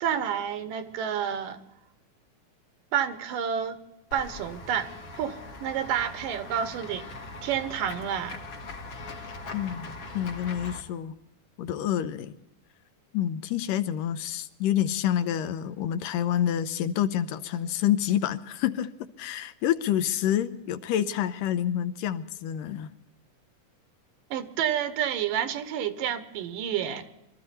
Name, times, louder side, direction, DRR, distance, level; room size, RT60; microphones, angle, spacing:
voice 1, 0.0-1.6 2.9-3.8 4.1-7.1 7.4-8.4 24.3-27.1, right 9 dB, 85° right, 2.6 m, -29 dB
Run / Walk footsteps / Bell, 4.1-10.8, left 2 dB, 50° left, 2.3 m, -41 dB
voice 2, 9.5-11.1 11.6-12.4 13.1-18.9 19.2-22.9, left 10 dB, 80° left, 2.4 m, -28 dB
24.0 x 13.5 x 4.2 m
omnidirectional pair, 3.8 m